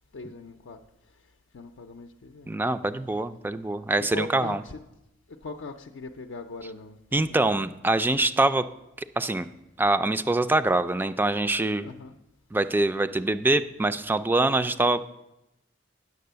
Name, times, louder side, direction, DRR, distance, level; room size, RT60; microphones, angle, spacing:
voice 1, 0.1-0.8 1.5-2.5 3.9-4.8 5.4-7.0 7.3-7.6 11.8-12.1 14.6-14.8, left 3 dB, 75° left, 4 dB, 0.5 m, -40 dB
voice 2, 2.5-4.6 7.1-8.6 9.0-9.5 9.8-11.9 12.5-15.1, right 2 dB, 10° right, 11 dB, 0.3 m, -24 dB
9.4 x 6.7 x 6.7 m, 0.90 s
head